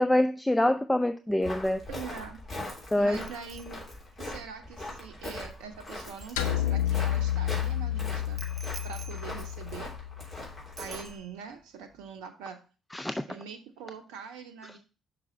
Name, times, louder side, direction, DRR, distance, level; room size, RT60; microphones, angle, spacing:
voice 1, 0.0-1.8 2.6-3.2 12.9-13.2, left 1 dB, 10° left, 0.5 m, -26 dB
Walk footsteps, 1.4-11.2, left 1 dB, 40° left, 3.0 m, -41 dB
voice 2, 1.9-2.4 3.0-3.8 4.2-8.4 8.8-9.9 10.8-12.6 13.3-14.8, right 6 dB, 75° right, 0.7 m, -43 dB
Bicycle bell, 3.2-7.0 8.4-10.4 10.8-11.6 11.9-12.2, right 5 dB, 45° right, 0.8 m, -51 dB
sound 1, 6.4-10.7, left 11 dB, 80° left, 0.5 m, -30 dB
6.0 x 4.8 x 4.1 m
hypercardioid pair, 45°, 0 cm